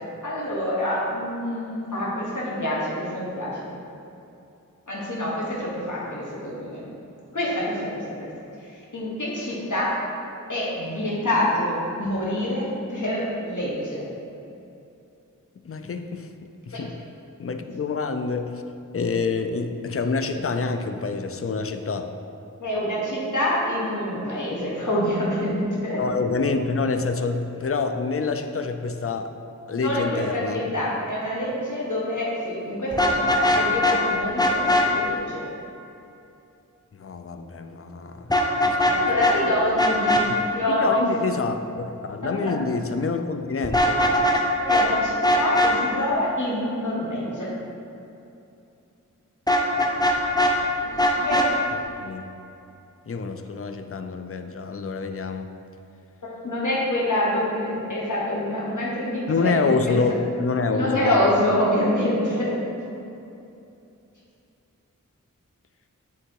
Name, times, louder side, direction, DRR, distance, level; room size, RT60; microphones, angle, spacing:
voice 1, 0.2-3.7 4.9-6.9 7.3-8.3 8.6-10.0 10.5-14.1 16.7-16.8 22.6-26.0 29.8-35.4 38.9-40.2 40.5-41.1 42.2-42.5 44.6-47.5 50.8-50.9 51.2-51.4 56.4-60.0 60.7-62.6, left 1 dB, 65° left, -6 dB, 1.7 m, -26 dB
voice 2, 15.7-16.3 16.7-16.9 17.4-18.6 18.9-22.1 26.0-29.3 29.7-30.6 37.0-38.3 38.6-39.0 40.3-40.4 40.7-44.0 52.0-52.2 53.1-55.5 59.3-61.2, left 4 dB, 45° left, 7 dB, 0.5 m, -27 dB
Vehicle horn car horn honking, 32.9-34.0 34.4-34.9 38.3-39.0 39.2-39.3 39.8-40.2 43.6-44.4 44.7-44.9 45.2-45.7 49.5-50.5 51.0-51.5, equal, 10° left, 0.8 m, -19 dB
9.7 x 3.5 x 4.7 m, 2.7 s
wide cardioid pair, 50°, 32 cm